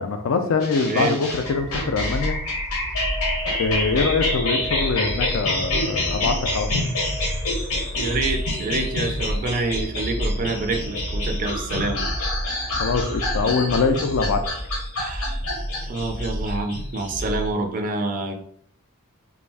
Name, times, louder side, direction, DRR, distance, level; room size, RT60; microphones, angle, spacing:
voice 1, 0.0-2.3 3.6-6.7 12.8-14.4, left 4 dB, 65° left, 7 dB, 0.4 m, -23 dB
sound 1, 0.6-17.5, left 2 dB, 85° left, 0.7 m, -28 dB
sound 2, 1.3-13.7, right 2 dB, 85° right, 0.5 m, -40 dB
sound 3, 1.7-17.5, equal, 10° left, 0.7 m, -31 dB
voice 2, 7.9-12.0 15.0-15.4 15.8-18.3, right 2 dB, 40° right, 5 dB, 0.3 m, -27 dB
2.4 x 2.1 x 3.3 m, 0.65 s
head